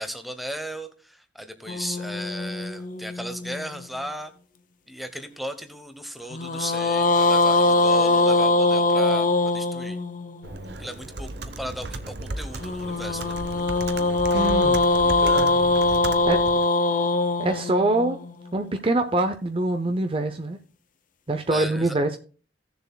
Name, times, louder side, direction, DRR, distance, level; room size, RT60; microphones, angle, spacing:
voice 1, 0.0-4.3 4.9-10.0 10.8-13.4 21.5-22.0, equal, ahead, 0.9 m, -36 dB
sound 1, 1.7-4.1 6.3-10.5 12.6-18.8, left 2 dB, 45° left, 0.7 m, -22 dB
Computer keyboard, 10.4-16.7, right 2 dB, 65° right, 0.8 m, -35 dB
voice 2, 14.3-14.8 16.3-16.4 17.4-18.2 18.5-20.6 21.3-22.1, right 2 dB, 30° right, 0.5 m, -24 dB
17.0 x 6.9 x 2.2 m
head